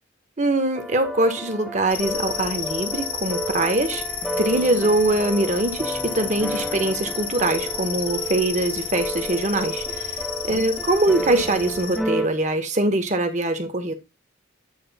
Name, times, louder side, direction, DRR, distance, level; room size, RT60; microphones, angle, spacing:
voice 1, 0.4-4.0 4.4-13.9, right 2 dB, 40° right, 6 dB, 1.4 m, -23 dB
sound 1, 0.7-12.3, right 1 dB, ahead, 0.6 m, -32 dB
sound 2, 1.9-12.0, left 7 dB, 30° left, 0.8 m, -32 dB
9.5 x 3.4 x 5.5 m, 0.25 s
head